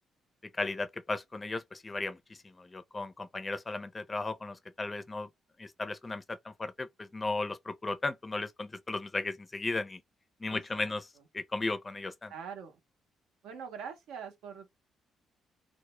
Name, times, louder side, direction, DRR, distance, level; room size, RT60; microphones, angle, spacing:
voice 1, 0.5-5.3 5.6-10.0 10.4-12.3, left 3 dB, 25° left, 0.4 m, -36 dB
voice 2, 10.5-10.9 12.3-12.8 13.4-14.7, right 7 dB, 90° right, 0.7 m, -43 dB
2.1 x 2.1 x 2.9 m
cardioid pair, 90°, 0 cm